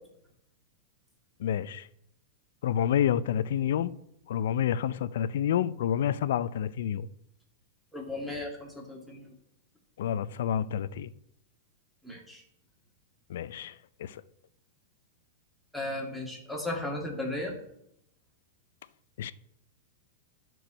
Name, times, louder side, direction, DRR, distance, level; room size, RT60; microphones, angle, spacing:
voice 1, 1.4-1.9 2.6-3.9 4.3-7.1 10.0-11.1 13.3-13.7 14.0-14.2 19.2-19.3, left 9 dB, 75° left, 0.4 m, -28 dB
voice 2, 7.9-9.3 12.0-12.4 15.7-17.5, left 2 dB, ahead, 2.2 m, -35 dB
12.0 x 4.6 x 5.2 m
hypercardioid pair, 130°, 0 cm